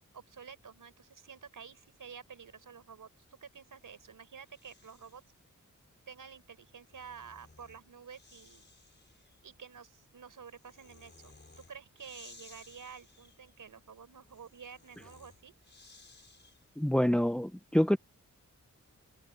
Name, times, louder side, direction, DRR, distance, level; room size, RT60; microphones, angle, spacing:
voice 1, 0.1-5.2 6.1-8.7 9.4-15.5, right 6 dB, 85° right, 4.9 m, -50 dB
Breathing, 3.4-5.3 6.6-16.8, left 3 dB, 35° left, 6.0 m, -59 dB
voice 2, 16.8-18.0, equal, 5° left, 0.6 m, -26 dB
wide cardioid pair, 105°, 31 cm